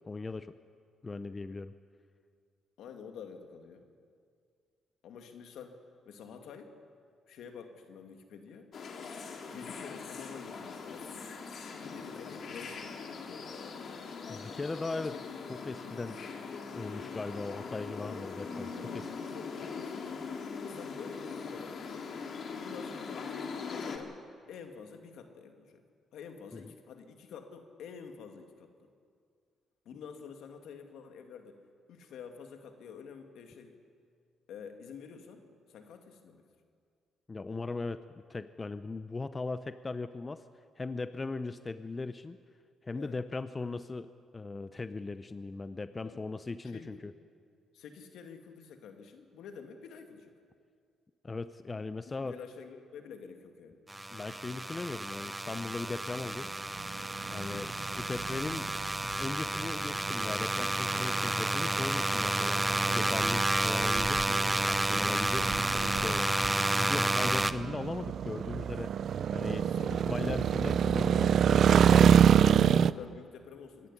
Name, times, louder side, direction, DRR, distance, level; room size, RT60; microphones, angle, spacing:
voice 1, 0.1-0.6 1.0-1.7 14.3-15.2 15.5-16.2 16.7-19.1 26.5-26.6 37.3-38.0 38.3-40.4 40.8-42.4 42.8-47.1 51.2-52.4 54.1-56.5 57.3-58.7 59.2-62.6 62.9-66.3 66.7-68.9 69.3-72.3, left 3 dB, 25° left, 12 dB, 0.7 m, -38 dB
voice 2, 2.8-3.9 5.0-6.8 7.3-8.7 9.4-11.3 11.9-14.1 14.9-16.3 18.7-20.3 20.6-22.1 22.6-24.2 24.5-25.8 26.1-28.7 29.9-31.6 31.9-33.8 34.5-36.5 42.9-43.2 46.0-47.1 47.7-50.3 52.1-53.8 57.3-57.5 65.4-66.5 69.5-70.2 72.4-73.9, left 6 dB, 80° left, 5 dB, 2.2 m, -49 dB
sound 1, 8.7-24.0, left 5 dB, 55° left, 2.4 m, -41 dB
sound 2, 53.9-67.5, right 2 dB, 10° right, 0.7 m, -31 dB
sound 3, 56.8-72.9, right 8 dB, 60° right, 0.5 m, -27 dB
24.5 x 11.5 x 10.0 m, 2.2 s
cardioid pair, 90°, 0 cm